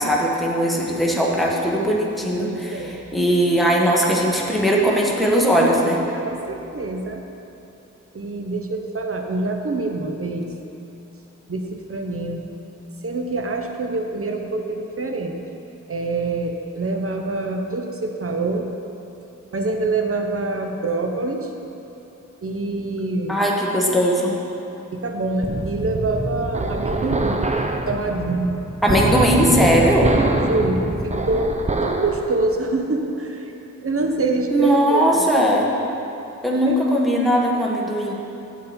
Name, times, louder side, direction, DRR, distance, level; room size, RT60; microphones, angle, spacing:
voice 1, 0.0-6.0 23.3-24.3 28.8-30.1 34.5-35.7 36.4-38.1, equal, ahead, -3 dB, 1.5 m, -19 dB
voice 2, 2.3-3.0 6.2-7.2 8.1-10.5 11.5-12.4 13.0-15.4 15.9-18.7 19.5-21.5 22.4-23.4 24.9-27.4 27.9-28.5 30.4-33.5 33.8-35.2 36.6-36.8, right 2 dB, 45° right, 4 dB, 1.0 m, -25 dB
sound 1, 25.4-32.2, right 2 dB, 25° right, 0.7 m, -24 dB
8.9 x 7.5 x 4.4 m, 2.9 s
cardioid pair, 55°, 31 cm